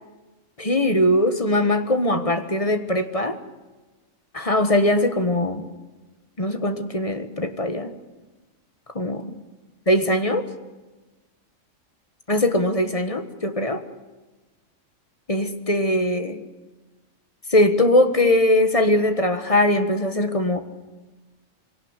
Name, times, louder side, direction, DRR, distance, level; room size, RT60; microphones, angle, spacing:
voice 1, 0.6-3.4 4.3-5.6 6.4-7.9 8.9-9.3 9.9-10.5 12.3-13.8 15.3-16.4 17.5-20.6, left 1 dB, 25° left, 8 dB, 1.5 m, -21 dB
23.5 x 18.0 x 8.2 m, 1.2 s
omnidirectional pair, 1.4 m